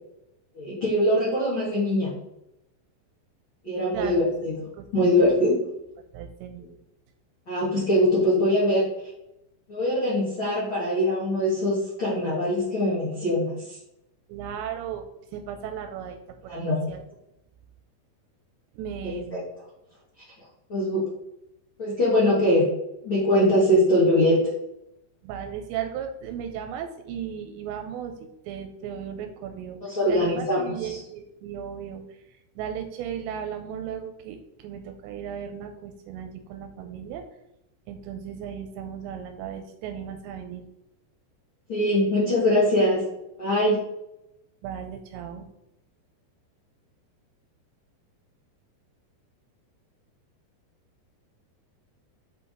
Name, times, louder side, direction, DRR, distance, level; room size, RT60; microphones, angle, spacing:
voice 1, 0.5-2.1 3.6-4.7 4.9-5.6 7.5-8.9 9.7-13.8 16.5-16.8 19.0-19.4 20.7-21.1 21.8-22.7 23.0-24.4 29.8-31.0 41.7-43.0 43.4-43.8, left 1 dB, 45° left, -8 dB, 1.7 m, -22 dB
voice 2, 3.9-4.3 4.7-5.4 6.1-6.7 14.3-16.2 16.4-16.6 16.9-17.0 18.7-19.5 25.2-29.8 30.1-37.3 37.9-40.6 44.6-45.5, right 8 dB, 85° right, 5 dB, 2.8 m, -36 dB
7.9 x 3.9 x 3.8 m, 0.85 s
omnidirectional pair, 5.0 m